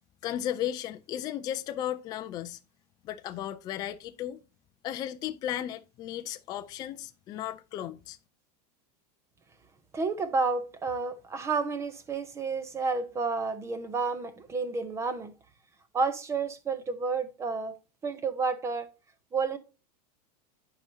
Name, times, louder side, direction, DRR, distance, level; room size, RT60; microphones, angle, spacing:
voice 1, 0.2-2.6 3.0-4.4 4.8-8.2, left 11 dB, 20° left, 0.3 m, -35 dB
voice 2, 9.9-15.3 15.9-17.8 18.0-18.9 19.3-19.6, right 4 dB, 15° right, 0.7 m, -30 dB
10.5 x 4.8 x 2.7 m
supercardioid pair, 160°, 21 cm